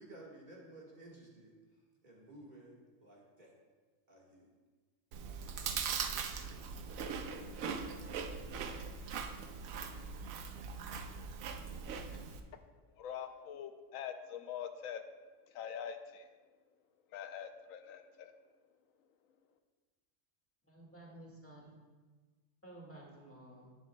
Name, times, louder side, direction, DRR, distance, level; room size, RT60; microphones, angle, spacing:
voice 1, 0.0-1.5 2.0-3.5 4.1-4.5, right 1 dB, 35° right, -4 dB, 1.6 m, -54 dB
Chewing mastication, 5.1-12.4, right 6 dB, 85° right, 1.0 m, -41 dB
voice 2, 13.0-15.0 15.5-16.3 17.1-18.3, left 8 dB, 85° left, 8 dB, 1.0 m, -44 dB
voice 3, 20.7-21.8 22.6-23.8, right 1 dB, 10° left, -2 dB, 1.7 m, -53 dB
11.0 x 10.0 x 2.2 m, 1.3 s
omnidirectional pair, 1.4 m